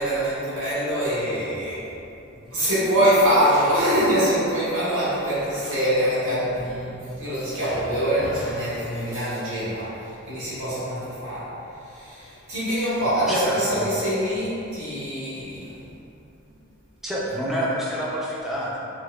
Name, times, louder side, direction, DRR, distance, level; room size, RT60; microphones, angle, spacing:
voice 1, 0.0-1.9 2.5-11.5 11.9-15.8, equal, 80° right, -11 dB, 1.3 m, -24 dB
voice 2, 13.3-14.0 16.4-16.5 17.0-18.8, right 1 dB, ahead, -7 dB, 0.3 m, -27 dB
4.4 x 2.1 x 2.2 m, 2.8 s
head